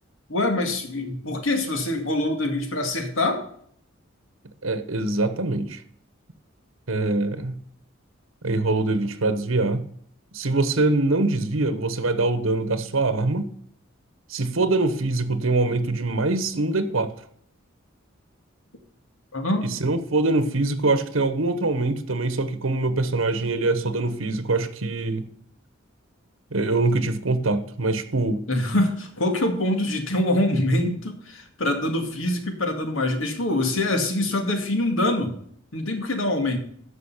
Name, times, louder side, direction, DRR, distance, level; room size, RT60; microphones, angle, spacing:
voice 1, 0.3-3.4 19.3-19.8 28.5-35.4 35.7-36.6, left 1 dB, 85° left, 2.1 m, -24 dB
voice 2, 4.6-5.8 6.9-7.6 8.4-9.8 10.3-13.5 14.3-17.1 19.6-25.3 26.5-28.4, right 2 dB, 85° right, 1.1 m, -23 dB
13.0 x 5.4 x 5.6 m
head